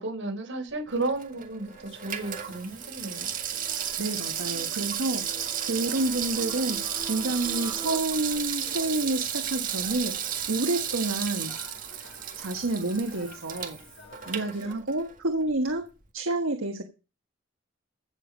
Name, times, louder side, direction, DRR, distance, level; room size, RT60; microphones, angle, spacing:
voice 1, 0.0-3.3, right 2 dB, 65° right, 4.5 m, -33 dB
Water tap faucet / Sink (filling or washing), 0.9-15.2 15.5-15.6, right 9 dB, 40° right, 1.7 m, -33 dB
sound 1, 1.7-14.7, left 3 dB, 65° left, 5.9 m, -50 dB
sound 2, 2.5-8.0, right 2 dB, 15° right, 2.5 m, -46 dB
voice 2, 4.0-5.2 5.6-6.8 7.1-10.2 10.5-11.5 12.4-13.8 14.3-15.9 16.1-16.8, right 2 dB, 80° right, 1.4 m, -29 dB
15.5 x 7.0 x 5.2 m
head